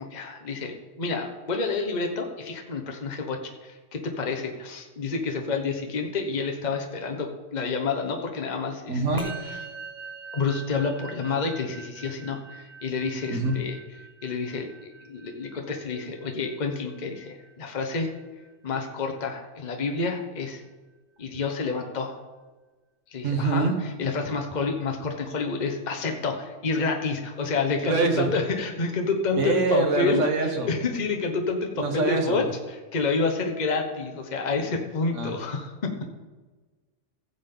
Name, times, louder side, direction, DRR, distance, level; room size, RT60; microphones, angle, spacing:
voice 1, 0.0-9.6 10.3-13.7 14.2-14.7 15.0-18.1 18.6-20.6 21.2-22.2 23.1-23.7 24.0-30.2 30.7-35.9, left 4 dB, 40° left, 3 dB, 1.1 m, -29 dB
voice 2, 8.9-9.3 13.3-13.5 23.2-23.7 27.8-28.3 29.4-30.7 31.8-32.4 35.1-35.4, right 4 dB, 75° right, 4 dB, 1.7 m, -25 dB
Musical instrument, 9.2-18.7, right 5 dB, 35° right, 1.4 m, -44 dB
15.5 x 7.4 x 3.8 m, 1.3 s
omnidirectional pair, 1.3 m